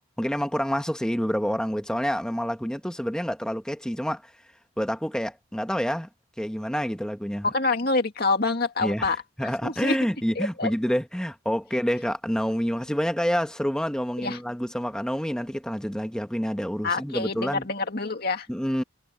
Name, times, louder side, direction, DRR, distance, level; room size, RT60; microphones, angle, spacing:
voice 1, 0.2-4.3 4.8-6.1 6.4-7.5 8.8-17.7 18.5-18.8, equal, 5° left, 1.4 m, -28 dB
voice 2, 7.4-9.2 9.6-10.0 10.4-10.7 14.2-14.4 16.8-18.5, left 3 dB, 50° left, 2.2 m, -26 dB
head